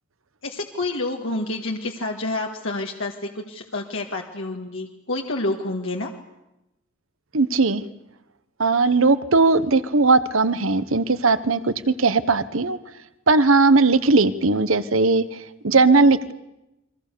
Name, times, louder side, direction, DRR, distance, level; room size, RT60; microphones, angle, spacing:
voice 1, 0.4-6.1, left 2 dB, 65° left, 1 dB, 1.8 m, -28 dB
voice 2, 7.3-7.8 8.6-12.8 13.3-15.2 15.6-16.3, right 3 dB, 70° right, 14 dB, 1.1 m, -18 dB
29.5 x 23.0 x 6.9 m, 0.94 s
head